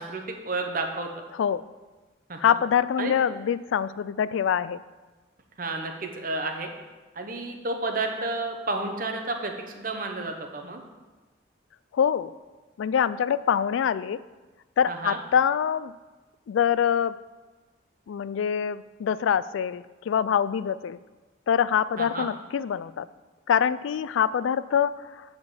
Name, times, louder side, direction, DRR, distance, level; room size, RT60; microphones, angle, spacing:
voice 1, 0.0-1.2 2.3-2.4 3.0-3.1 5.6-6.7 7.1-10.8 14.9-15.2 22.0-22.3, right 2 dB, 45° right, 4 dB, 1.0 m, -31 dB
voice 2, 1.3-1.6 2.4-4.8 11.9-12.3 12.8-14.2 14.8-15.9 16.5-17.2 18.1-21.0 21.5-23.1 23.5-25.2, left 8 dB, 85° left, 16 dB, 0.3 m, -25 dB
8.2 x 5.2 x 7.1 m, 1.2 s
head